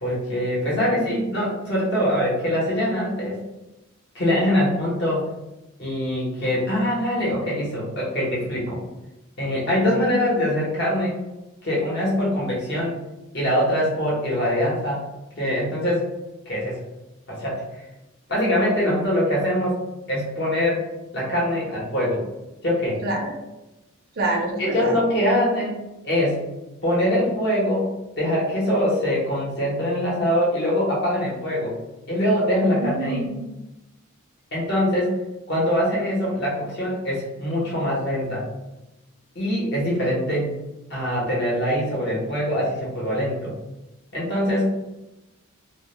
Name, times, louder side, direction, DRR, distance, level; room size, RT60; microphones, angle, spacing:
voice 1, 0.0-3.4 4.1-5.3 5.8-8.8 9.4-11.2 11.6-13.0 13.3-15.0 15.4-16.1 16.5-16.8 17.3-17.6 18.3-19.8 20.1-20.9 21.1-22.2 22.6-23.0 24.6-25.8 26.0-26.4 26.8-27.8 28.2-31.8 32.1-33.2 34.5-35.2 35.5-38.5 39.3-40.5 40.9-43.5 44.1-44.7, equal, 50° left, -5 dB, 0.9 m, -23 dB
voice 2, 23.0-23.3 24.2-25.0 32.7-33.5, right 2 dB, 45° right, 1 dB, 0.4 m, -27 dB
2.2 x 2.1 x 3.0 m, 0.97 s
head